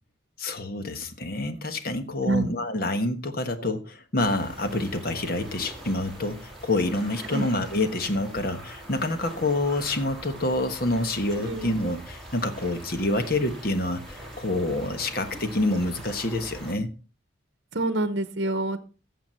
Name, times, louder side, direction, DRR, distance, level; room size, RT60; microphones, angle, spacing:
voice 1, 0.4-16.9, left 2 dB, 50° left, 1.3 m, -27 dB
sound 1, 4.2-16.7, right 1 dB, ahead, 3.2 m, -42 dB
voice 2, 17.7-18.8, right 2 dB, 60° right, 0.9 m, -26 dB
13.5 x 7.5 x 4.4 m
head